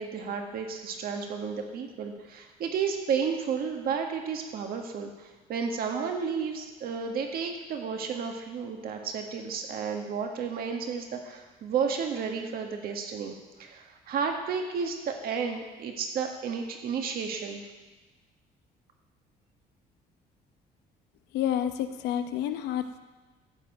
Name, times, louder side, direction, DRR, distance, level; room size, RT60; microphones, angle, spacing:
voice 1, 0.0-17.7, right 6 dB, 60° right, 3 dB, 1.7 m, -32 dB
voice 2, 21.3-23.0, left 10 dB, 85° left, 9 dB, 0.9 m, -29 dB
14.0 x 5.2 x 7.8 m, 1.2 s
cardioid pair, 110°, 17 cm